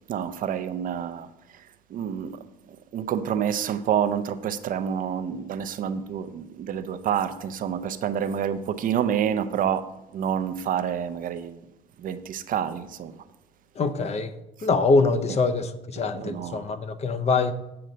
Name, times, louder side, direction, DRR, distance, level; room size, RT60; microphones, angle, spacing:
voice 1, 0.1-11.7 12.0-13.2 14.6-14.7 15.2-15.4 16.0-16.7, right 8 dB, 55° right, 0.5 m, -28 dB
voice 2, 13.8-14.3 14.6-17.5, left 4 dB, 40° left, 0.6 m, -24 dB
7.6 x 3.9 x 6.6 m
cardioid pair, 110°, 17 cm